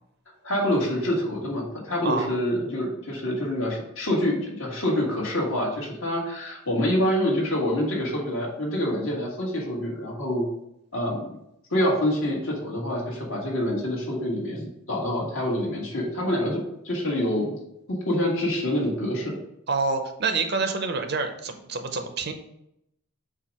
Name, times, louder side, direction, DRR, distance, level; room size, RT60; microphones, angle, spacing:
voice 1, 0.4-10.5 10.9-11.4 11.7-17.5 17.9-19.4, left 1 dB, 65° left, -3 dB, 2.0 m, -26 dB
voice 2, 19.7-22.3, right 4 dB, 50° right, 6 dB, 0.6 m, -27 dB
7.3 x 2.5 x 5.3 m, 0.78 s
head